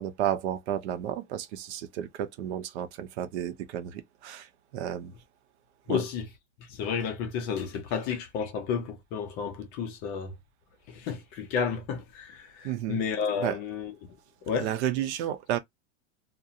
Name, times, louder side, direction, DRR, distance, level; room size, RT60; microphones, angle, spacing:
voice 1, 0.0-5.1 5.9-6.0 12.6-13.0 13.4-13.6 14.6-15.6, right 11 dB, 70° right, 0.6 m, -32 dB
voice 2, 5.9-6.3 6.7-10.3 10.9-14.2 14.4-14.7, left 6 dB, 30° left, 0.4 m, -32 dB
2.4 x 2.1 x 2.6 m
supercardioid pair, 160°, 35 cm